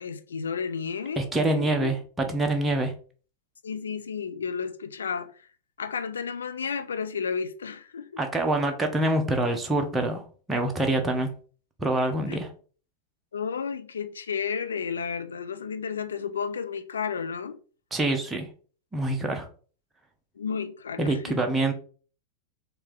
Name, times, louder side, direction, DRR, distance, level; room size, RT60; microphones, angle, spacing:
voice 1, 0.0-1.9 3.6-5.3 5.8-8.2 12.3-12.4 13.3-17.6 20.4-21.5, left 6 dB, 70° left, 0.4 m, -32 dB
voice 2, 1.2-2.9 8.2-10.2 10.5-11.3 11.8-12.5 17.9-18.5 18.9-19.5 21.0-21.7, right 2 dB, 10° right, 0.9 m, -25 dB
4.4 x 2.6 x 3.6 m
figure-of-eight pair, 90°, 0 cm